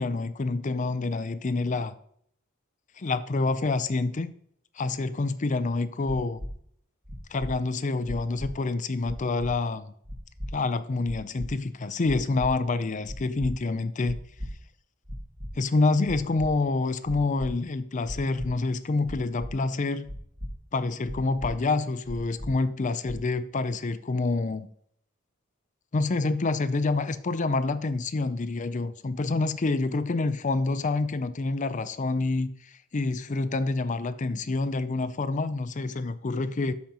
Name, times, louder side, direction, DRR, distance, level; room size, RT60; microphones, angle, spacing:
voice 1, 0.0-1.9 3.0-4.3 4.8-6.4 7.3-9.9 10.5-14.2 15.6-20.1 20.7-24.7 25.9-32.5 32.9-36.7, left 3 dB, 35° left, 13 dB, 0.5 m, -27 dB
sound 1, 6.4-6.5 7.0-7.5 8.0-8.5 9.0-9.5 10.0-10.5 11.0-11.5 12.0-12.5 13.0-13.5 14.0-14.5 15.0-15.5 16.0-16.5 17.0-17.5 18.0-18.5 19.0-19.5 20.0-20.5 21.0-21.5 22.0-22.5 23.0-23.4, equal, 40° right, 1.9 m, -37 dB
13.0 x 5.2 x 2.9 m, 0.66 s
head